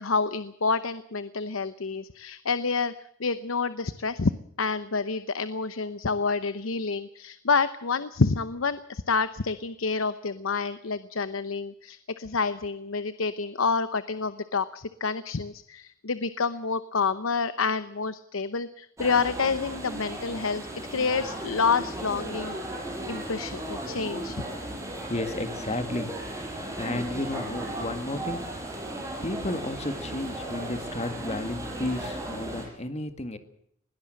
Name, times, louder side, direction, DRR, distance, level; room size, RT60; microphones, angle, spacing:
voice 1, 0.0-2.9 3.2-4.3 4.6-20.6 20.9-22.6 23.1-24.4, left 4 dB, 80° left, 13 dB, 0.9 m, -28 dB
sound 1, 19.0-32.7, right 1 dB, 15° right, 6.5 m, -36 dB
voice 2, 25.1-26.1 26.5-28.4 29.2-33.4, left 1 dB, 35° left, 9 dB, 2.0 m, -32 dB
21.0 x 17.5 x 7.8 m, 0.73 s
head